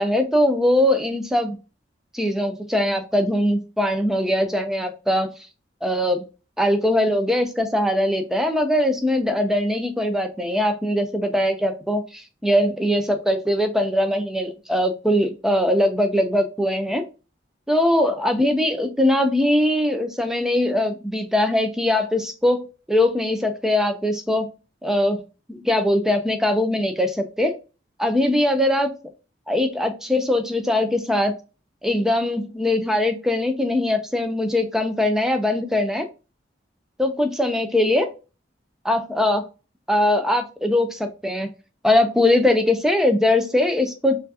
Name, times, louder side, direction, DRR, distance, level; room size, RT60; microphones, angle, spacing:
voice 1, 0.0-1.6 2.1-5.3 5.8-6.2 6.6-17.0 17.7-22.6 22.9-24.5 24.8-25.2 25.5-27.6 28.0-28.9 29.5-31.3 31.8-36.1 37.0-38.1 38.8-39.4 39.9-41.5 41.8-44.2, left 1 dB, 5° right, 6 dB, 0.5 m, -21 dB
4.3 x 2.6 x 2.7 m, 0.31 s
head